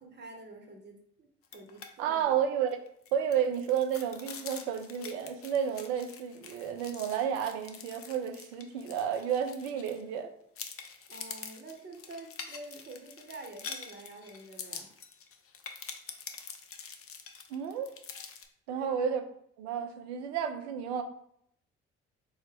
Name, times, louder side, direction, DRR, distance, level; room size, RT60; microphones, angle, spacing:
voice 1, 0.0-2.2 11.1-14.9 18.7-18.9, right 2 dB, 35° right, 3 dB, 0.8 m, -48 dB
sound 1, 1.4-1.9 2.2-2.3 2.7-10.2 10.6-18.5, left 6 dB, 45° left, 0.6 m, -46 dB
voice 2, 2.0-2.8 3.1-10.3 17.5-18.0 18.7-19.2 19.6-21.0, right 8 dB, 80° right, 6 dB, 0.5 m, -31 dB
3.7 x 2.0 x 3.3 m, 0.71 s
hypercardioid pair, 45°, 32 cm